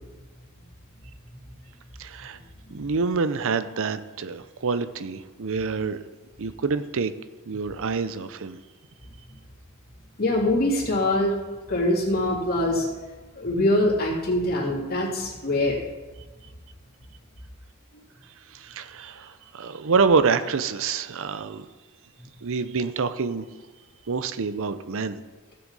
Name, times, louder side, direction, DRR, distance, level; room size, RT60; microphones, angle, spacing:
voice 1, 2.0-2.4 2.7-6.0 6.4-7.1 7.5-8.6 18.5-21.6 22.4-23.5 24.1-25.2, right 5 dB, 65° right, 12 dB, 0.6 m, -26 dB
voice 2, 10.2-11.4 11.7-12.9 13.3-15.8, left 1 dB, 45° left, -3 dB, 2.9 m, -23 dB
15.5 x 7.6 x 4.1 m, 1.2 s
head